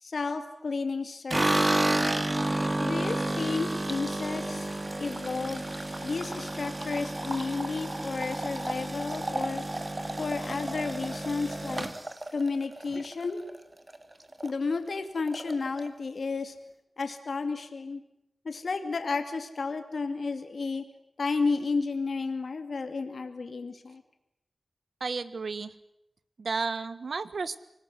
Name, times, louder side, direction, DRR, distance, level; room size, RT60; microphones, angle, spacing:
voice 1, 0.0-1.8 2.8-5.6 6.0-9.6 10.2-11.9 12.3-13.4 14.4-16.5 17.0-18.0 18.4-20.8 21.2-24.0, left 4 dB, 75° left, 7 dB, 2.4 m, -32 dB
sound 1, 1.3-13.6 13.9-14.5 14.8-14.9 15.2-15.9, right 1 dB, 25° right, 2.3 m, -31 dB
voice 2, 25.0-25.7 26.4-27.6, right 4 dB, 75° right, 14 dB, 1.4 m, -32 dB
25.5 x 19.0 x 9.9 m, 0.81 s
wide cardioid pair, 70°, 0 cm